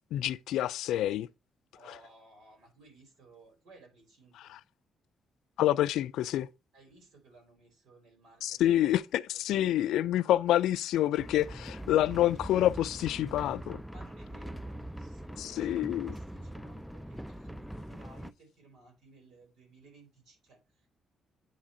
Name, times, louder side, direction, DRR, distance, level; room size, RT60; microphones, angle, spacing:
voice 1, 0.1-1.3 5.6-6.5 8.4-13.8 15.4-16.1, left 13 dB, 85° left, 0.3 m, -27 dB
voice 2, 1.7-4.6 6.7-8.9 9.3-9.9 10.3-10.7 13.9-20.9, right 3 dB, 80° right, 4.5 m, -58 dB
sound 1, 11.2-18.3, right 1 dB, ahead, 0.3 m, -42 dB
8.9 x 3.7 x 4.2 m
cardioid pair, 90°, 0 cm